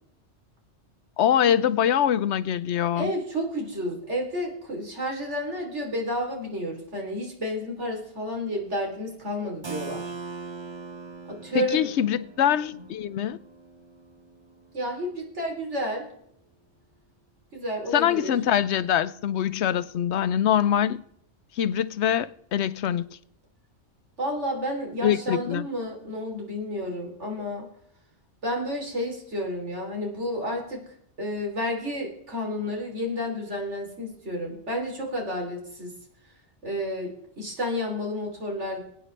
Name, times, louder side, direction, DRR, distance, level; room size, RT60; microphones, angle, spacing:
voice 1, 1.2-3.1 11.5-13.4 17.9-21.0 21.6-23.1 25.0-25.7, left 10 dB, 75° left, 0.9 m, -24 dB
voice 2, 3.0-10.1 11.3-11.9 12.7-12.8 14.7-16.1 17.5-18.3 24.2-27.7 28.4-30.9 31.2-35.9 36.6-38.8, equal, 85° right, 3.6 m, -31 dB
Keyboard (musical), 9.6-15.2, right 4 dB, 30° right, 0.7 m, -41 dB
22.5 x 9.1 x 3.2 m
omnidirectional pair, 1.2 m